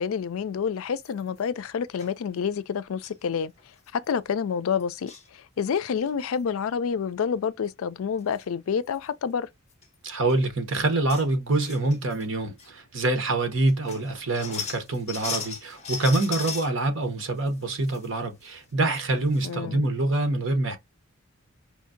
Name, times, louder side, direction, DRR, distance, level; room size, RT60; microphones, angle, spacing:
voice 1, 0.0-3.5 3.9-9.5 19.4-19.8, left 6 dB, 75° left, 0.4 m, -28 dB
sound 1, 1.0-1.4 2.0-2.1 3.0-3.2 3.6-3.7 3.9-4.1 4.8-5.3 5.7-6.1 7.8-7.9 8.2-8.4 8.9-9.0 9.7-9.9 10.3-10.4 10.8-11.3 11.6-12.3 12.6-12.7 13.3-13.4 13.7-16.7 17.2-18.1 18.4-18.5 18.9-19.0 19.3-19.5, left 6 dB, 30° left, 1.0 m, -37 dB
voice 2, 10.0-20.8, right 2 dB, 60° right, 1.1 m, -25 dB
4.9 x 2.7 x 2.5 m
head